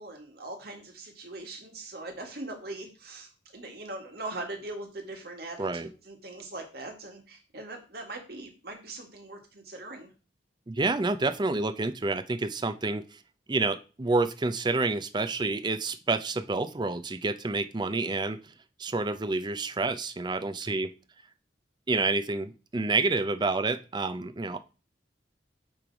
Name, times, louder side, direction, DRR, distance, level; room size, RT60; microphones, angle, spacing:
voice 1, 0.0-10.1, right 2 dB, 60° right, 3 dB, 1.8 m, -41 dB
voice 2, 5.6-5.9 10.7-13.0 13.5-18.4 18.8-20.9 21.9-24.6, right 3 dB, 25° right, 10 dB, 0.5 m, -28 dB
8.8 x 3.3 x 4.6 m, 0.34 s
head